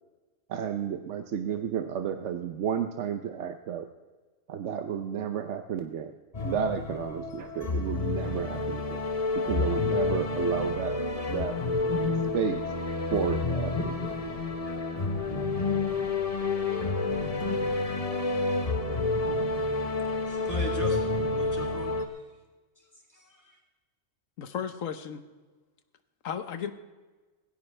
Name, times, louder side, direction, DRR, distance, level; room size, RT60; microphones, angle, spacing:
voice 1, 0.5-3.9 4.5-6.1 6.4-9.0 9.3-11.0 11.3-11.6 12.3-12.6 13.1-14.1, right 8 dB, 70° right, 8 dB, 1.0 m, -32 dB
sound 1, 6.3-22.1, left 3 dB, 30° left, 1.0 m, -29 dB
voice 2, 20.2-22.2 22.8-23.6, right 1 dB, 15° left, -1 dB, 2.8 m, -41 dB
voice 3, 24.4-25.2 26.2-26.7, left 8 dB, 90° left, 10 dB, 1.3 m, -34 dB
18.0 x 16.0 x 3.3 m, 1.3 s
omnidirectional pair, 1.3 m